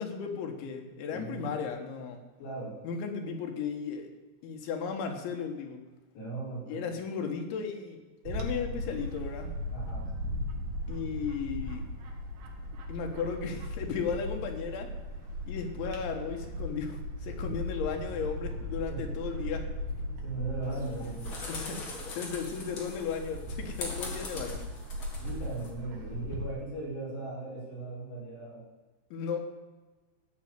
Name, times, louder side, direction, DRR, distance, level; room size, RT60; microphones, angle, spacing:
voice 1, 0.0-2.2 2.8-4.1 4.4-5.8 6.7-9.6 10.9-11.9 12.9-14.9 15.5-19.7 21.5-24.6 29.1-29.4, left 6 dB, 90° left, 4 dB, 4.0 m, -35 dB
voice 2, 1.1-1.6 2.4-2.8 6.1-6.9 9.6-10.1 18.9-19.1 20.1-21.3 25.2-28.6, right 3 dB, 65° left, -7 dB, 7.9 m, -38 dB
Bird / Wind, 8.3-26.5, equal, 75° right, 4.0 m, -38 dB
sound 1, 20.7-25.7, left 3 dB, 40° left, 2.1 m, -42 dB
14.0 x 6.5 x 9.3 m, 1.3 s
omnidirectional pair, 5.2 m